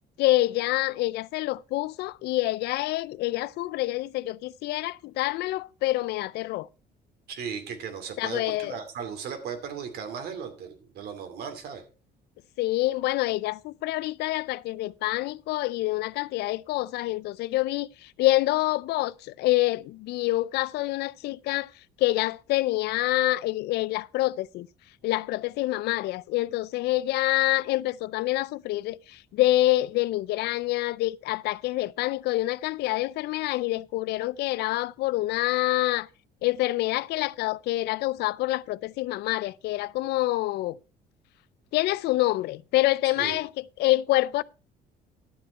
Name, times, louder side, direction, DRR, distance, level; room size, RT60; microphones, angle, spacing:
voice 1, 0.2-6.7 8.2-8.8 12.6-21.7 22.0-24.7 25.0-36.1 36.4-40.8 41.7-44.4, left 17 dB, 75° left, 0.4 m, -26 dB
voice 2, 7.3-11.8 43.2-43.4, right 7 dB, 70° right, 2.5 m, -36 dB
11.5 x 7.7 x 4.4 m
cardioid pair, 110°, 17 cm